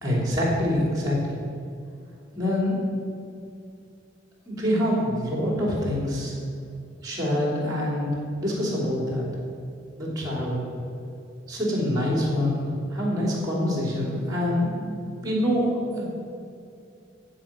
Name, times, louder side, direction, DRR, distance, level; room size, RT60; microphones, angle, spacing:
voice 1, 0.0-1.4 2.3-2.8 4.5-6.3 7.0-8.1 8.4-9.3 10.0-10.6 11.5-16.0, left 1 dB, 20° right, -3 dB, 3.3 m, -25 dB
15.0 x 5.1 x 7.5 m, 2.5 s
head